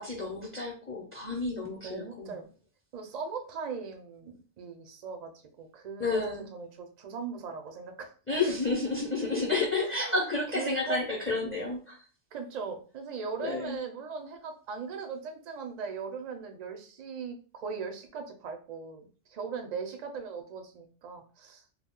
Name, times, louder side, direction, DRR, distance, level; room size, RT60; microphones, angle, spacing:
voice 1, 0.0-2.3 6.0-6.5 8.3-12.0 13.4-13.8, left 3 dB, 15° left, -3 dB, 0.5 m, -31 dB
voice 2, 1.8-2.5 2.9-5.3 5.6-8.1 9.8-10.2 10.5-11.0 12.3-21.6, right 5 dB, 50° right, 4 dB, 0.5 m, -39 dB
2.4 x 2.2 x 3.6 m, 0.38 s
omnidirectional pair, 1.2 m